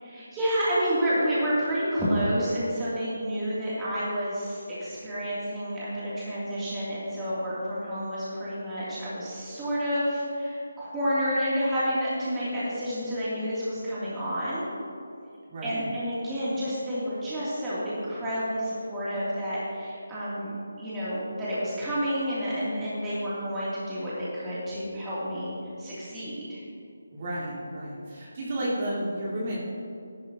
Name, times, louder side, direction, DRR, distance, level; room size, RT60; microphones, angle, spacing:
voice 1, 0.0-14.7 15.6-26.6, equal, 10° right, -11 dB, 3.2 m, -29 dB
voice 2, 15.5-15.9 27.1-29.6, right 1 dB, 40° right, -7 dB, 2.9 m, -32 dB
13.5 x 12.0 x 3.0 m, 2.4 s
figure-of-eight pair, 160°, 0 cm